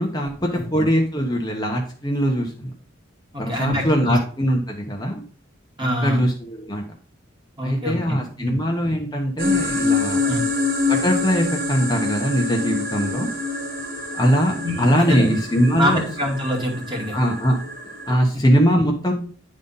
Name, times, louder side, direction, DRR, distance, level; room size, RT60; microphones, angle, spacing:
voice 1, 0.0-2.7 3.4-5.2 5.8-6.8 7.6-10.2 10.9-13.3 14.1-16.0 17.1-17.6 18.1-19.1, equal, 20° left, 0 dB, 1.1 m, -21 dB
voice 2, 3.3-4.2 5.8-6.2 7.6-8.6 10.2-10.4 14.6-15.4 15.8-17.2, equal, 25° right, 0 dB, 2.3 m, -25 dB
sound 1, 9.4-18.1, left 3 dB, 45° right, 1.6 m, -26 dB
10.0 x 4.1 x 5.5 m, 0.42 s
head